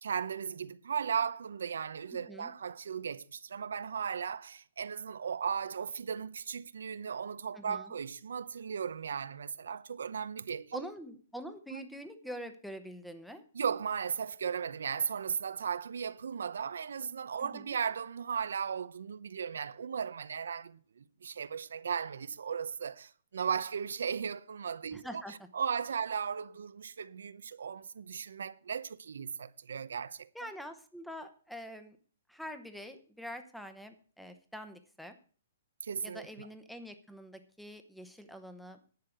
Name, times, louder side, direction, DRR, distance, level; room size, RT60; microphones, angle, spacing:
voice 1, 0.0-10.9 11.7-11.8 13.5-25.2 25.5-30.3 35.8-36.5, right 7 dB, 85° right, 0.8 m, -36 dB
voice 2, 7.5-7.9 10.7-13.4 17.4-17.8 24.9-25.3 30.3-32.0 32.3-35.2 36.0-38.8, equal, ahead, 0.9 m, -45 dB
11.0 x 6.5 x 7.9 m
hypercardioid pair, 165°, 0 cm